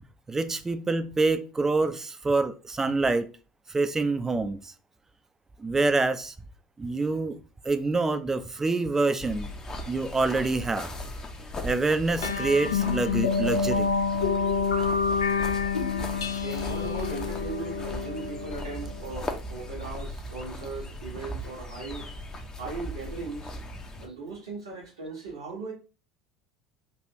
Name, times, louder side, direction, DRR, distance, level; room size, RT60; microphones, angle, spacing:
voice 1, 0.3-3.3 3.7-4.7 5.6-6.3 6.8-7.4 7.6-9.5 9.9-10.9 11.6-13.9, right 3 dB, 20° right, 0.4 m, -26 dB
sound 1, 9.2-24.1, left 1 dB, 30° left, 0.7 m, -38 dB
sound 2, 12.2-19.1, left 5 dB, 85° left, 0.3 m, -28 dB
voice 2, 16.2-22.1 22.5-23.5 24.0-25.7, right 3 dB, 85° right, 1.0 m, -38 dB
3.3 x 2.5 x 2.8 m
hypercardioid pair, 70°, 2 cm